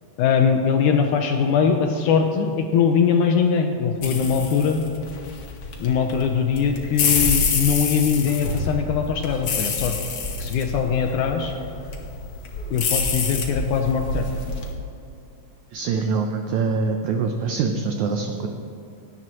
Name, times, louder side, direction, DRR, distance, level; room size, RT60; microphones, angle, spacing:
voice 1, 0.2-4.8 5.8-10.0 10.4-11.5 12.7-14.2, left 6 dB, 80° left, 4 dB, 1.8 m, -21 dB
sound 1, 4.0-14.7, left 5 dB, 60° left, 1.5 m, -27 dB
voice 2, 15.7-18.5, right 4 dB, 85° right, 4 dB, 1.6 m, -24 dB
16.5 x 11.0 x 3.0 m, 2.8 s
omnidirectional pair, 4.1 m